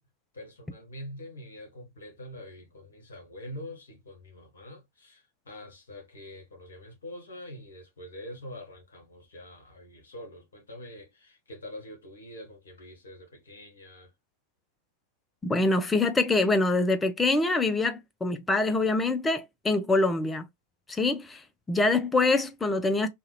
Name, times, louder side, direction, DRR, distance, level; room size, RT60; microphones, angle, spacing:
voice 1, 0.3-14.1, left 1 dB, 70° left, 1.3 m, -45 dB
voice 2, 15.4-20.4 20.9-21.4 21.7-23.1, left 2 dB, 10° left, 0.5 m, -25 dB
2.8 x 2.3 x 3.2 m
figure-of-eight pair, 90°, 0 cm